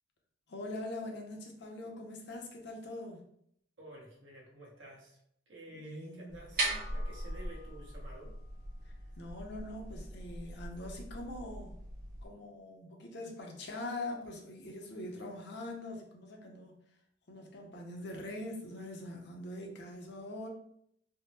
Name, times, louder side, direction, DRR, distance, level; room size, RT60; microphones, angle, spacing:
voice 1, 0.5-3.2 5.7-6.3 8.9-11.7 12.2-16.8 17.3-20.5, left 1 dB, 60° left, 1 dB, 0.6 m, -43 dB
voice 2, 3.8-5.2 5.5-8.4 8.8-9.1, right 1 dB, 80° right, -3 dB, 1.0 m, -51 dB
sound 1, 6.3-12.3, right 2 dB, 50° right, 1.1 m, -40 dB
3.4 x 2.0 x 2.8 m, 0.70 s
head